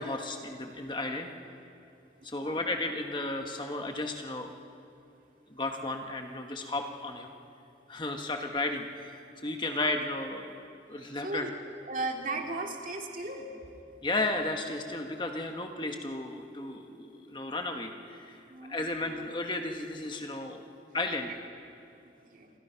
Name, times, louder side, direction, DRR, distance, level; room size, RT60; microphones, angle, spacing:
voice 1, 0.0-1.3 2.2-4.5 5.5-7.3 7.9-10.6 10.9-11.5 14.0-18.4 18.7-20.6 20.9-21.4, left 2 dB, 25° left, 4 dB, 1.3 m, -34 dB
voice 2, 2.2-2.6 11.0-13.5 18.5-19.2 22.0-22.5, right 2 dB, 45° right, 2 dB, 2.5 m, -37 dB
28.5 x 22.0 x 5.7 m, 2.6 s
head